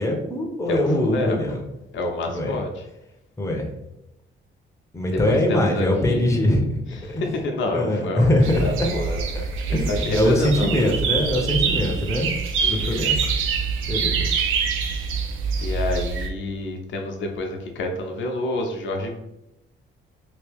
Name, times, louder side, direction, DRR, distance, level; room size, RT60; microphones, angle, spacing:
voice 1, 0.0-1.6 2.3-2.6 3.4-3.7 4.9-6.7 7.1-7.2 7.7-8.9 9.3-9.4 9.7-12.3 12.7-13.3 13.9-14.2, left 1 dB, 15° left, 1 dB, 0.7 m, -22 dB
voice 2, 0.7-1.6 1.9-2.8 5.1-6.5 6.9-11.2 12.6-13.0 15.6-19.2, left 1 dB, 70° left, 2 dB, 0.8 m, -29 dB
sound 1, 8.4-16.3, right 5 dB, 90° right, 0.5 m, -25 dB
2.9 x 2.8 x 3.4 m, 0.87 s
cardioid pair, 90°, 20 cm